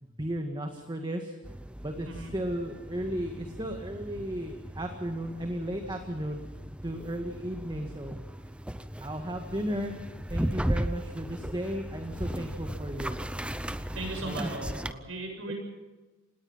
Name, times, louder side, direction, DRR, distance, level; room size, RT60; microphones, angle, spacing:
voice 1, 0.0-1.3 1.8-6.5 6.8-8.2 9.0-10.0 10.3-13.2 14.2-14.6 15.5-15.6, equal, 20° right, 4 dB, 1.8 m, -35 dB
sound 1, 1.4-14.9, equal, 5° right, 0.7 m, -37 dB
voice 2, 13.9-15.5, right 2 dB, 70° right, 3 dB, 7.7 m, -37 dB
27.0 x 19.5 x 5.7 m, 1.2 s
head